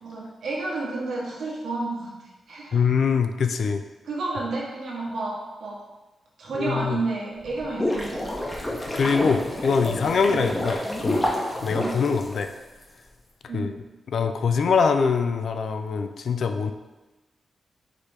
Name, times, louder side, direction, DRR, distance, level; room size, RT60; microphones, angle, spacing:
voice 1, 0.0-2.8 4.0-5.8 6.4-8.3 10.3-10.5 11.7-12.0 13.5-13.8, right 3 dB, 80° right, -4 dB, 1.1 m, -31 dB
voice 2, 2.7-3.8 6.5-7.0 8.9-11.3 11.6-12.5 13.5-13.8 14.1-16.7, left 5 dB, 70° left, 8 dB, 0.3 m, -23 dB
sound 1, 7.4-12.8, left 1 dB, 15° left, 0.8 m, -29 dB
4.7 x 3.0 x 3.3 m, 1.1 s
cardioid pair, 75°, 0 cm